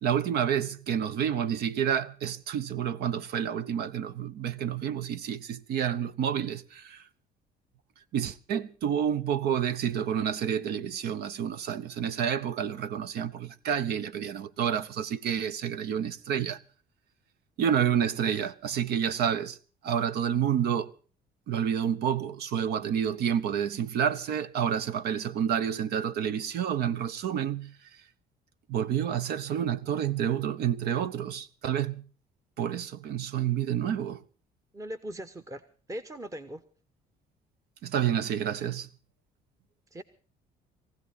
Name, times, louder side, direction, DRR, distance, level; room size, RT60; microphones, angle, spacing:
voice 1, 0.0-7.0 8.1-16.6 17.6-19.6 19.8-20.9 21.5-27.8 28.7-32.1 32.6-34.2 37.8-38.9, right 9 dB, 75° right, 1.0 m, -29 dB
voice 2, 34.7-35.6 35.9-36.6 39.9-40.0, equal, 20° right, 1.1 m, -39 dB
22.0 x 16.0 x 4.1 m
cardioid pair, 110°, 17 cm